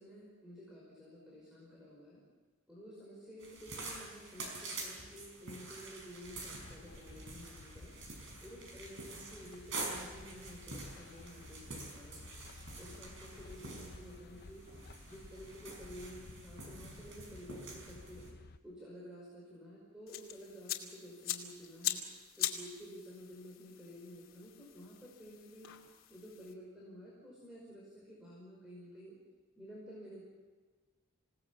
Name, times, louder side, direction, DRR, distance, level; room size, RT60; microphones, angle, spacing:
voice 1, 0.0-2.2 2.7-8.0 8.4-12.3 12.8-14.7 15.1-18.3 18.6-22.0 22.4-25.7 26.1-29.2 29.6-30.2, equal, 5° right, -5 dB, 5.2 m, -52 dB
sound 1, 3.4-18.3, right 3 dB, 60° right, 5.5 m, -47 dB
sound 2, 6.2-18.6, left 2 dB, 50° left, 0.8 m, -54 dB
sound 3, 20.1-26.5, left 11 dB, 70° left, 2.6 m, -42 dB
27.5 x 18.0 x 7.1 m, 1.4 s
head